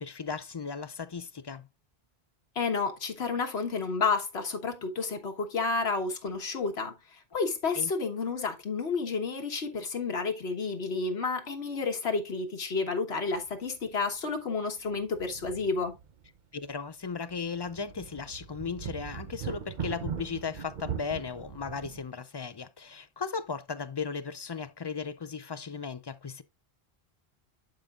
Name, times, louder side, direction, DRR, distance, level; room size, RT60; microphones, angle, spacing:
voice 1, 0.0-1.7 7.7-7.9 16.5-26.4, left 5 dB, 45° left, 0.3 m, -36 dB
voice 2, 2.5-15.9, left 4 dB, 90° left, 1.5 m, -31 dB
sound 1, 13.3-13.5 13.8-13.9 14.9-16.3 16.7-16.8 17.3-22.0, right 8 dB, 50° right, 0.8 m, -40 dB
11.5 x 5.1 x 2.4 m
omnidirectional pair, 1.0 m